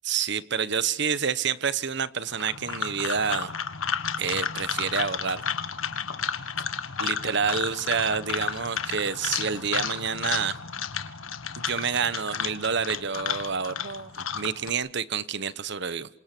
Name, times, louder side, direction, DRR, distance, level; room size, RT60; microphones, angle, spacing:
voice 1, 0.0-3.5 4.2-5.4 7.0-10.6 11.6-16.1, right 6 dB, 60° right, 15 dB, 1.1 m, -28 dB
sound 1, 2.3-14.7, left 7 dB, 90° left, 1.7 m, -32 dB
27.5 x 26.5 x 6.1 m, 0.80 s
head